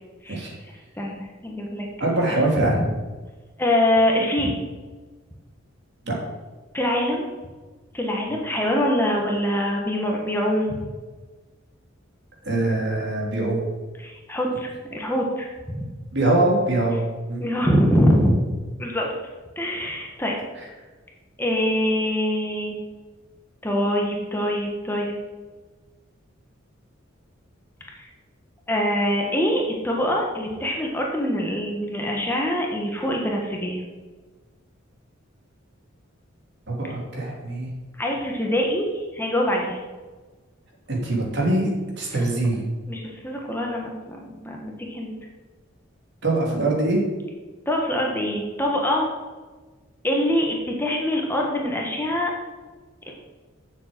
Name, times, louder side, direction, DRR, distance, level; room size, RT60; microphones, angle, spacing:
voice 1, 1.0-1.9 2.3-2.4 3.6-4.6 6.7-7.3 7.9-10.8 14.0-15.5 15.7-15.8 17.4-18.4 18.8-19.1 19.6-20.3 21.4-22.7 23.6-25.1 28.0-28.1 28.7-33.8 38.0-39.8 42.9-45.1 47.6-49.1 50.0-52.3 53.1-53.2, equal, 10° left, -1 dB, 1.4 m, -24 dB
voice 2, 2.0-2.8 6.0-6.2 12.4-13.6 16.1-17.0 17.3-17.4 36.7-37.7 40.9-41.7 42.0-42.6 46.2-47.0, right 2 dB, 60° right, -2 dB, 2.9 m, -23 dB
7.5 x 7.2 x 7.8 m, 1.3 s
head